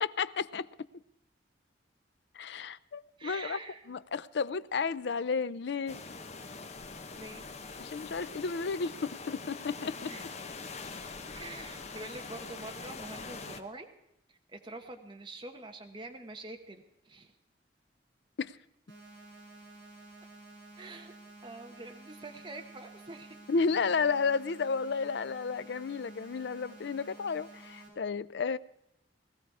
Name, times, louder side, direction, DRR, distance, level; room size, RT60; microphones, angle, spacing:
voice 1, 0.0-0.7 2.3-3.6 3.9-6.0 7.8-10.1 18.4-18.6 23.5-28.6, left 5 dB, 65° left, 0.5 m, -32 dB
voice 2, 3.2-3.9 7.1-7.5 10.1-10.3 11.3-13.9 14.3-17.3 20.8-21.1 21.4-23.3, right 2 dB, 25° right, 1.0 m, -45 dB
sound 1, 5.9-13.6, left 4 dB, 35° left, 0.8 m, -43 dB
sound 2, 18.9-27.9, right 2 dB, 75° right, 5.5 m, -52 dB
19.0 x 14.0 x 4.8 m
head